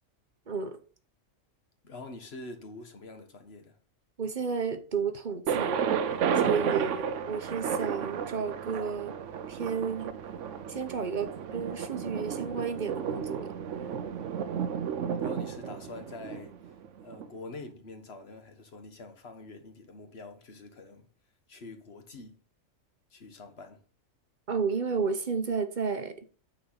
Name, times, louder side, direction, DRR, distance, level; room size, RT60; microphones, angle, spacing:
voice 1, 0.5-0.8 4.2-5.8 6.3-9.2 9.5-10.2 10.7-13.5 24.5-26.3, right 5 dB, 40° right, 0.9 m, -32 dB
voice 2, 1.8-3.8 15.2-16.7 17.0-21.1 21.5-22.4 23.1-23.8, left 3 dB, 50° left, 1.5 m, -45 dB
Thunder, 5.5-17.3, right 7 dB, 65° right, 1.0 m, -32 dB
9.1 x 4.1 x 5.7 m
omnidirectional pair, 1.4 m